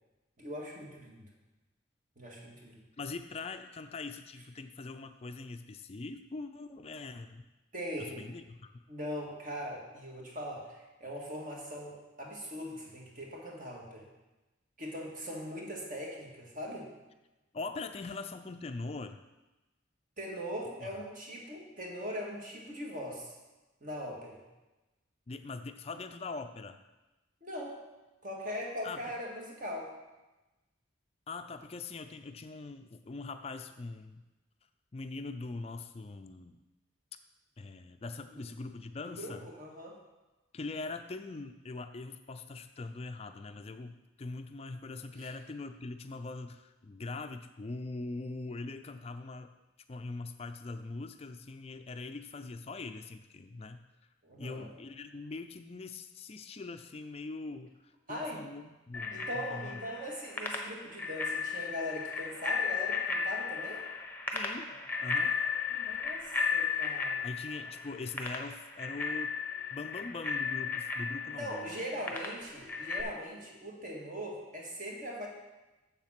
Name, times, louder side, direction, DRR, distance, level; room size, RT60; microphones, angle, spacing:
voice 1, 0.4-1.2 2.2-2.8 7.7-8.3 8.9-14.1 14.8-16.9 20.2-23.4 23.8-24.4 27.4-27.8 28.2-29.9 39.1-40.0 45.2-45.3 54.2-54.7 58.1-58.4 59.1-63.8 65.7-67.3 71.3-75.3, equal, 40° right, -1 dB, 1.9 m, -40 dB
voice 2, 3.0-7.4 8.0-8.7 17.5-19.2 20.8-20.9 25.3-26.8 28.8-29.1 31.3-34.2 34.9-36.6 37.6-39.5 40.5-49.5 49.9-53.9 54.4-59.8 64.3-64.7 65.0-65.4 67.2-69.4 69.7-71.8, left 3 dB, 30° left, 8 dB, 0.4 m, -42 dB
Bicycle bell, 58.9-73.0, left 5 dB, 10° left, 0.9 m, -35 dB
7.4 x 7.2 x 5.7 m, 1.1 s
head